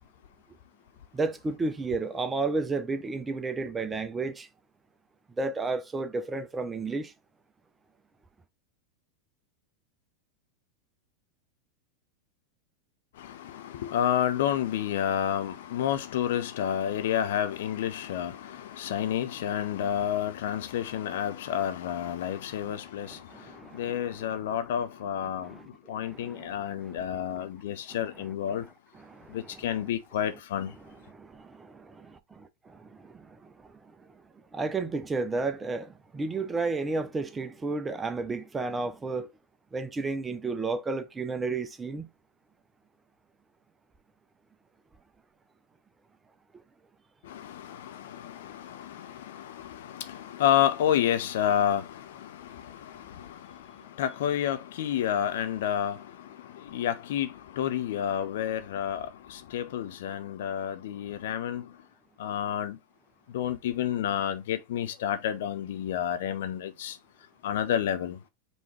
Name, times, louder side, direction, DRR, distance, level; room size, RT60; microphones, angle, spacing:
voice 1, 1.1-4.5 5.4-7.1 22.6-24.4 25.5-27.0 27.9-28.7 28.9-29.9 31.1-34.1 34.5-39.3 39.7-42.1, right 3 dB, 15° right, 0.7 m, -33 dB
voice 2, 13.2-23.2 23.7-25.5 25.9-28.6 29.3-30.7 47.3-53.3 54.0-56.0 56.7-61.6 62.2-62.8 63.3-67.0 67.4-68.2, left 10 dB, 60° left, 0.6 m, -30 dB
5.3 x 3.1 x 3.2 m
figure-of-eight pair, 90°, 0 cm